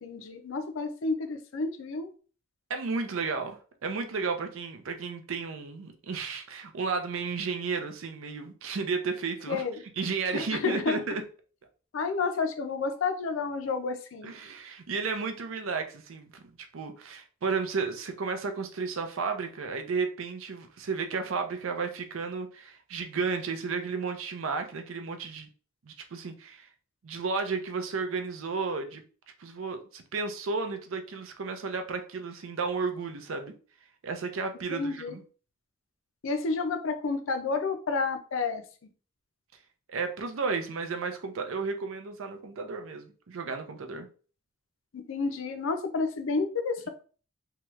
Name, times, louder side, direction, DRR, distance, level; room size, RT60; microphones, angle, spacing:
voice 1, 0.0-2.1 9.5-9.8 10.3-11.0 11.9-14.3 34.7-35.2 36.2-38.6 44.9-46.9, left 4 dB, 75° left, 7 dB, 0.5 m, -30 dB
voice 2, 2.7-9.6 10.0-11.2 14.2-16.4 16.7-25.5 25.9-26.7 27.0-29.0 29.4-33.5 34.0-35.2 39.9-44.1, right 4 dB, 80° right, 6 dB, 0.5 m, -33 dB
2.8 x 2.3 x 3.1 m, 0.39 s
head